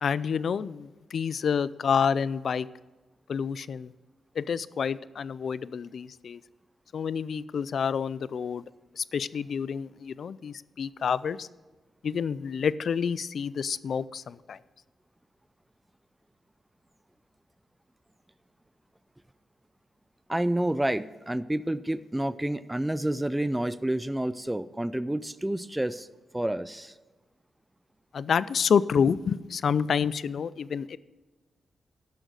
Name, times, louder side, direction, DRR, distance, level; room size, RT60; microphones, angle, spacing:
voice 1, 0.0-2.7 3.3-3.9 4.4-6.4 6.9-8.6 9.0-11.5 12.0-14.6 28.1-31.0, left 6 dB, 65° left, 19 dB, 0.3 m, -28 dB
voice 2, 20.3-26.1 26.3-26.9, right 1 dB, 10° right, 15 dB, 0.4 m, -29 dB
11.0 x 6.4 x 6.5 m, 1.2 s
cardioid pair, 90°, 0 cm